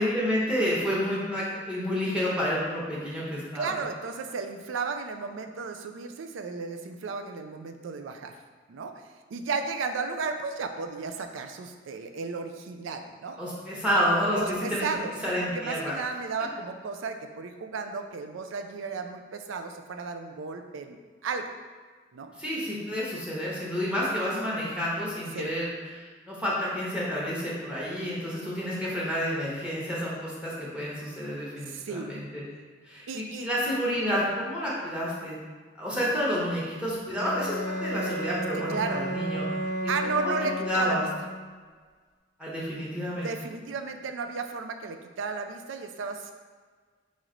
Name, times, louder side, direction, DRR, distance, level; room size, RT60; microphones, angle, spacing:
voice 1, 0.0-3.8 13.4-14.9 15.2-15.9 22.4-32.4 32.8-35.4 35.8-39.5 39.8-40.3 40.6-41.0 42.4-43.3, equal, 5° right, -6 dB, 0.8 m, -29 dB
voice 2, 3.5-8.3 8.7-8.9 9.3-13.4 14.4-15.1 15.4-21.5 22.1-22.3 25.3-25.5 31.7-32.2 33.1-33.5 38.7-39.0 39.9-41.0 43.1-46.3, right 4 dB, 75° right, 6 dB, 0.4 m, -34 dB
Bowed string instrument, 37.1-41.5, equal, 20° left, 0.5 m, -32 dB
4.1 x 3.1 x 3.8 m, 1.5 s
head